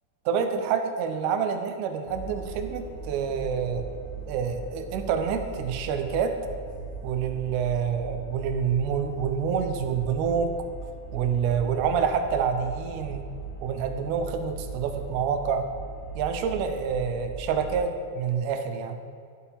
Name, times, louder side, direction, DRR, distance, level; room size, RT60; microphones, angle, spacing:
voice 1, 0.3-3.9 4.3-6.3 7.0-10.5 11.1-13.3 13.6-15.7 16.2-19.0, right 7 dB, 85° right, 6 dB, 2.1 m, -27 dB
sound 1, 2.1-17.7, right 4 dB, 55° left, 2.8 m, -39 dB
11.5 x 5.5 x 2.8 m, 2.2 s
omnidirectional pair, 3.6 m